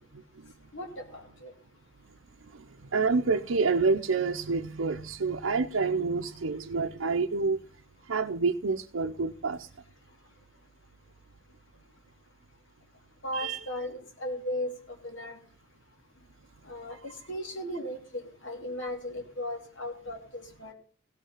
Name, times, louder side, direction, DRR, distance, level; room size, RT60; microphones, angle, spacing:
voice 1, 0.7-1.5 13.2-14.7 15.0-15.4 16.7-20.7, left 1 dB, 65° left, 2.7 m, -36 dB
voice 2, 2.9-7.6 8.1-9.7 13.3-13.6, right 4 dB, 85° right, 0.7 m, -28 dB
16.5 x 5.6 x 7.3 m
head